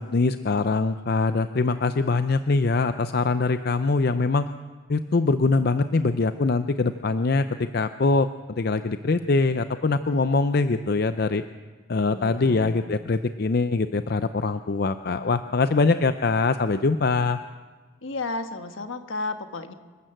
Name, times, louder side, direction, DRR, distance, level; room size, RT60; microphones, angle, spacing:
voice 1, 0.0-4.4 4.9-11.4 11.9-17.4, left 3 dB, 50° left, 10 dB, 0.5 m, -23 dB
voice 2, 12.0-12.9 18.0-19.7, left 3 dB, 70° left, 8 dB, 1.4 m, -33 dB
27.0 x 12.5 x 7.8 m, 1.4 s
head